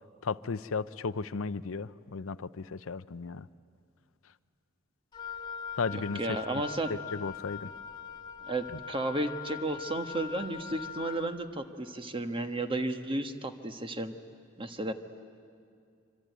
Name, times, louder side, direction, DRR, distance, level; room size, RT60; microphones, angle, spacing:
voice 1, 0.2-3.5 5.8-6.6 6.9-7.7, left 4 dB, 85° left, 15 dB, 0.6 m, -35 dB
Wind instrument woodwind instrument, 5.1-11.4, left 7 dB, 20° left, 2.0 m, -42 dB
voice 2, 5.9-6.9 8.5-14.1 14.6-14.9, right 2 dB, 25° right, 7 dB, 1.4 m, -33 dB
25.5 x 25.0 x 9.3 m, 2.3 s
head